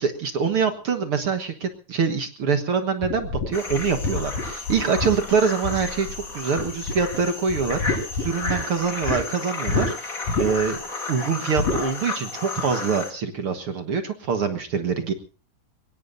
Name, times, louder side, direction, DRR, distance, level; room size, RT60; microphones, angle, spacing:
voice 1, 0.0-10.8 11.1-15.1, right 5 dB, 50° right, 7 dB, 1.8 m, -25 dB
sound 1, 3.0-6.3 6.6-7.2 7.5-9.2 9.7-9.9 10.3-10.8 11.6-11.8, left 3 dB, 75° left, 6.3 m, -27 dB
sound 2, 3.5-13.1, left 3 dB, 25° left, 2.7 m, -33 dB
24.0 x 21.0 x 2.6 m, 0.35 s
omnidirectional pair, 3.9 m